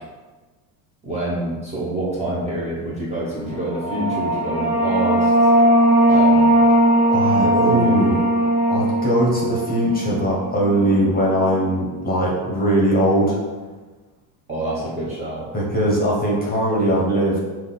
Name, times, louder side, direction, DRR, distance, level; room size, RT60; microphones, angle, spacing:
voice 1, 1.0-5.3 6.1-6.5 7.4-8.2 14.5-15.5, right 1 dB, 15° right, -7 dB, 0.7 m, -26 dB
sound 1, 3.6-10.9, right 1 dB, 65° right, 1.4 m, -18 dB
voice 2, 7.1-8.2 8.7-13.4 15.5-17.4, equal, 20° left, -4 dB, 0.8 m, -20 dB
5.5 x 2.4 x 3.9 m, 1.3 s
cardioid pair, 160°, 47 cm